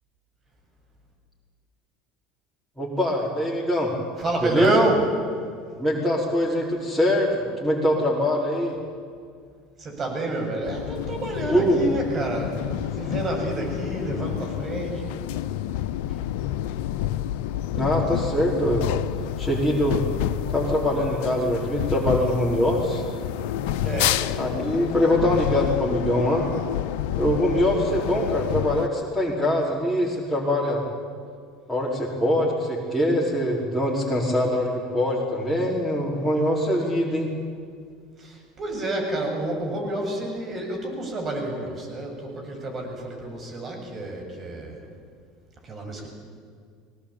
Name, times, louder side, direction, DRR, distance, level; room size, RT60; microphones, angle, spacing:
voice 1, 2.8-3.9 4.4-4.8 5.8-8.8 11.5-12.1 17.7-18.9 19.4-20.0 20.5-23.0 24.4-26.5 27.2-30.8 31.7-37.3, equal, 5° left, -6 dB, 5.0 m, -23 dB
voice 2, 4.2-5.1 9.8-15.2 23.8-24.3 38.2-44.8 45.6-46.1, right 2 dB, 35° right, 1 dB, 7.4 m, -29 dB
sound 1, 10.6-28.9, left 12 dB, 70° left, 0.7 m, -29 dB
21.0 x 18.5 x 8.9 m, 2.2 s
hypercardioid pair, 80°, 0 cm